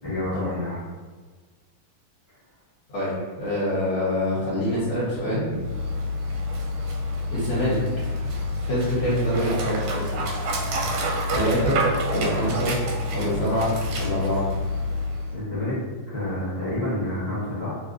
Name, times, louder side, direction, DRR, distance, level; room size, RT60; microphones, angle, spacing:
voice 1, 0.0-0.8 15.3-15.8 16.1-17.8, left 1 dB, 25° left, -12 dB, 1.0 m, -28 dB
voice 2, 2.9-5.5 7.3-7.8 8.2-10.0 11.3-11.8 12.1-12.8 13.1-14.4, equal, 60° left, -11 dB, 1.6 m, -26 dB
Dog, 5.5-15.4, left 1 dB, 90° right, 1.5 m, -28 dB
3.6 x 2.6 x 2.4 m, 1.4 s
omnidirectional pair, 2.4 m